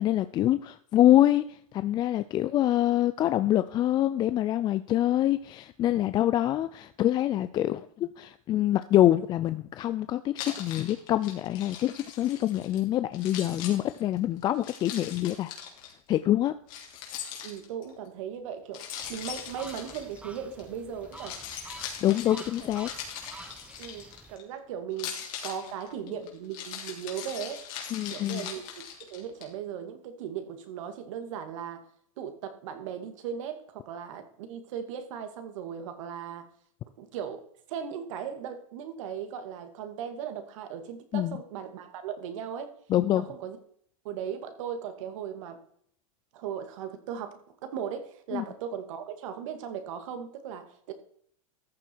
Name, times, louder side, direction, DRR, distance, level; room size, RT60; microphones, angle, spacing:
voice 1, 0.0-15.5 16.1-16.5 20.4-20.6 22.0-22.9 25.6-26.2 27.2-27.5 27.9-28.5 41.1-41.4 42.9-43.3 48.3-48.4, left 13 dB, 25° left, 0.4 m, -26 dB
Keys jangling, 10.4-12.8 13.1-15.9 16.7-17.9 18.7-20.6 21.0-24.4 24.9-29.4, left 8 dB, 45° left, 3.3 m, -40 dB
voice 2, 17.4-21.4 23.8-25.1 25.4-27.6 28.1-31.8 32.2-36.5 37.0-37.4 37.7-42.7 43.1-43.6 44.0-45.6 46.3-50.9, right 8 dB, 65° right, 2.1 m, -37 dB
sound 1, 19.0-24.4, right 2 dB, 5° right, 0.9 m, -48 dB
14.0 x 7.2 x 4.6 m
supercardioid pair, 135°, 18 cm